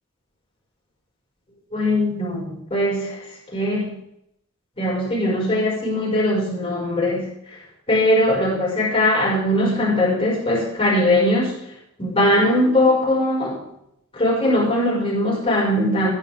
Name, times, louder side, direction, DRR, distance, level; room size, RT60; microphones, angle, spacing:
voice 1, 1.7-3.2 3.5-3.9 4.8-7.3 7.9-11.5 12.0-13.6 14.1-16.1, left 1 dB, 25° left, -4 dB, 6.0 m, -20 dB
15.0 x 11.5 x 3.7 m, 0.76 s
head